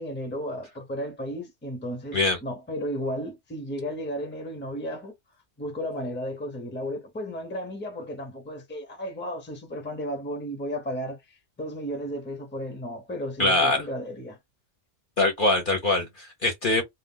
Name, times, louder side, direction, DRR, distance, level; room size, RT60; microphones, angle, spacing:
voice 1, 0.0-5.1 5.6-14.4, equal, 10° left, 0.6 m, -34 dB
voice 2, 13.4-13.8 15.2-16.8, left 2 dB, 50° left, 0.8 m, -23 dB
2.3 x 2.1 x 3.7 m
omnidirectional pair, 1.3 m